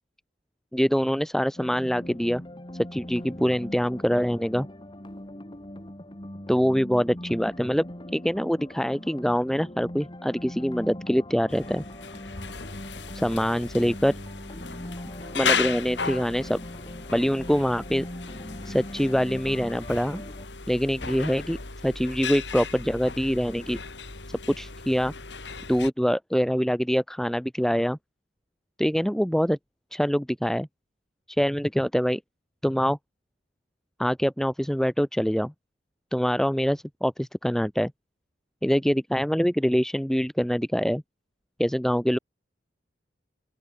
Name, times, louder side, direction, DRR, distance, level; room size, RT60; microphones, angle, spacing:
voice 1, 0.7-2.4 2.9-4.7 6.5-7.8 8.1-11.8 13.1-14.1 15.3-16.6 17.1-18.0 18.6-20.2 20.7-21.6 21.8-23.8 24.6-25.1 25.7-28.0 28.8-29.6 29.9-30.7 31.4-32.2 32.6-33.0 34.0-35.5 36.1-37.9 38.6-41.0 41.6-42.2, equal, 5° left, 1.0 m, -24 dB
sound 1, 1.6-20.5, left 1 dB, 30° left, 2.6 m, -41 dB
sound 2, 11.5-25.9, left 5 dB, 75° left, 3.3 m, -35 dB
open air
head